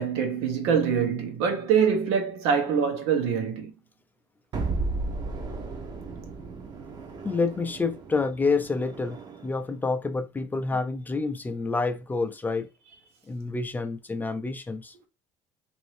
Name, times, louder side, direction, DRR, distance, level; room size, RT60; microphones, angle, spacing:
voice 1, 0.0-3.7, right 7 dB, 80° right, 0.9 m, -24 dB
sound 1, 4.5-9.6, right 3 dB, 40° right, 0.7 m, -34 dB
voice 2, 7.2-12.7 13.3-14.9, left 4 dB, 15° left, 0.4 m, -28 dB
3.0 x 2.6 x 3.1 m
supercardioid pair, 100°, 10 cm